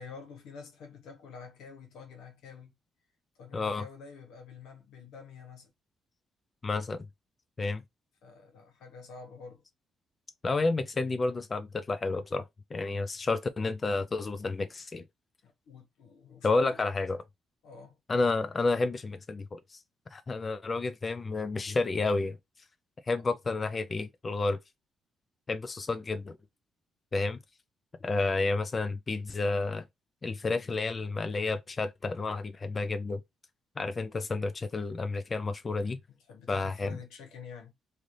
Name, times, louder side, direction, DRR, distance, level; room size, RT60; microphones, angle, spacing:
voice 1, 0.0-2.7 3.3-5.7 8.2-9.6 15.4-16.8 17.6-18.0 23.1-23.2 36.3-37.7, left 5 dB, 85° left, 1.1 m, -48 dB
voice 2, 3.5-3.8 6.6-7.1 7.6-7.8 10.4-12.4 12.7-15.0 16.4-17.2 18.1-19.8 20.1-22.4 23.1-24.6 25.5-26.4 27.1-27.4 28.0-29.8 30.2-33.2 33.8-36.0 36.5-37.0, left 3 dB, 30° left, 0.4 m, -30 dB
3.2 x 2.5 x 2.6 m
cardioid pair, 90°, 0 cm